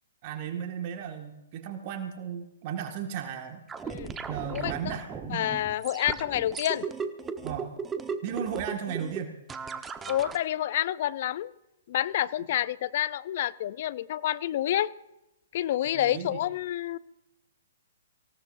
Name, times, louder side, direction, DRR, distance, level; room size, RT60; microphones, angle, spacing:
voice 1, 0.2-3.6 4.3-5.4 7.4-7.7 8.2-9.3 15.9-16.4, right 8 dB, 40° right, 1.9 m, -35 dB
sound 1, 3.7-10.4, right 5 dB, 15° right, 1.1 m, -36 dB
voice 2, 5.3-6.9 10.1-11.5 11.9-14.9 15.5-17.0, left 12 dB, 50° left, 0.6 m, -28 dB
25.0 x 17.0 x 2.7 m
hypercardioid pair, 125°, 0 cm